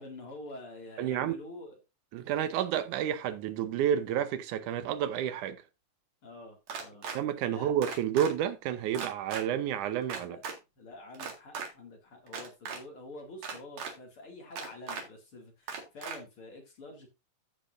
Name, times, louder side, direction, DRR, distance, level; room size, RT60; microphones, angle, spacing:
voice 1, 0.0-1.8 6.2-7.1 7.5-7.8 10.2-10.4 10.8-17.1, left 2 dB, 45° left, 2.8 m, -47 dB
voice 2, 1.0-1.3 2.1-5.6 7.1-10.4, right 10 dB, 70° right, 2.2 m, -30 dB
sound 1, 6.7-7.2 7.8-8.3 8.9-9.4 10.1-10.5 11.1-11.7 12.3-12.8 13.4-13.9 14.6-15.0 15.7-16.2, right 5 dB, 55° right, 2.9 m, -37 dB
15.0 x 5.6 x 2.6 m
omnidirectional pair, 4.0 m